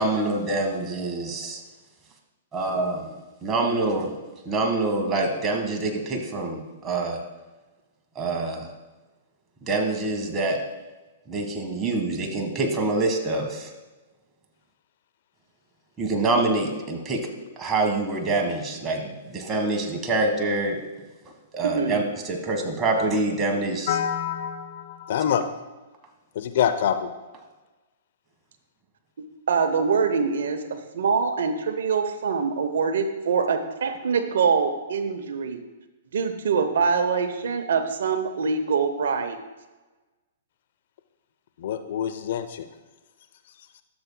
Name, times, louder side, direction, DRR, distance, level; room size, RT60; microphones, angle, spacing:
voice 1, 0.0-1.6 2.5-4.1 4.4-7.2 8.1-8.7 9.6-10.6 11.3-13.7 16.0-17.3 17.6-20.8 21.5-24.0, right 2 dB, 20° right, 2 dB, 1.5 m, -26 dB
voice 2, 21.6-22.0 29.5-35.6 36.1-39.4, right 5 dB, 70° right, 8 dB, 0.8 m, -24 dB
voice 3, 23.9-25.4 26.3-27.1 41.6-42.7, left 9 dB, 60° left, 9 dB, 0.6 m, -26 dB
12.5 x 7.0 x 2.2 m, 1.2 s
hypercardioid pair, 120°, 0 cm